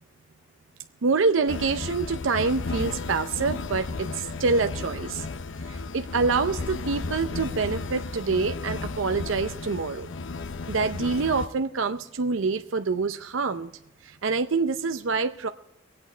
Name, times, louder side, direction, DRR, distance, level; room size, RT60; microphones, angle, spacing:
voice 1, 1.0-5.3 5.6-10.1 10.7-13.7 14.0-15.5, right 4 dB, 75° right, 8 dB, 0.6 m, -26 dB
sound 1, 1.5-11.5, left 3 dB, 70° left, 0.6 m, -34 dB
22.5 x 8.7 x 4.4 m, 0.91 s
head